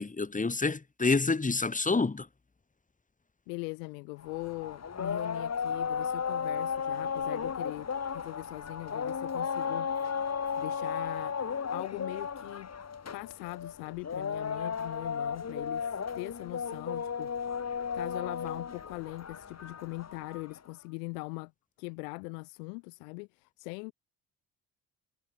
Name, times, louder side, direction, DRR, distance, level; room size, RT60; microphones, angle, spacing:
voice 1, 0.0-2.2, left 3 dB, 15° left, 1.3 m, -28 dB
voice 2, 3.5-11.4 11.7-12.7 13.1-17.5 17.9-21.5 21.8-23.9, left 34 dB, 85° left, 1.2 m, -41 dB
sound 1, 4.2-20.6, left 6 dB, 35° left, 1.9 m, -35 dB
hypercardioid pair, 55°, 47 cm